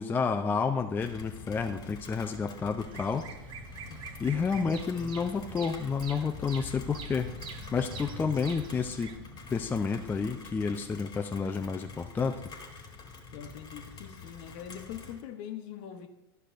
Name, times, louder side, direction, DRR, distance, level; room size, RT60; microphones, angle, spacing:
voice 1, 0.0-3.2 4.2-7.3 7.7-9.1 9.5-12.4, left 5 dB, 15° left, 6 dB, 0.4 m, -30 dB
Rain, 1.0-15.2, left 4 dB, 30° left, 1.4 m, -46 dB
Bird vocalization bird call bird song, 2.8-9.2, right 6 dB, 40° right, 0.8 m, -46 dB
voice 2, 3.9-4.2 13.3-16.1, left 9 dB, 55° left, 7 dB, 0.9 m, -43 dB
11.5 x 6.6 x 2.5 m, 0.92 s
hypercardioid pair, 90°, 13 cm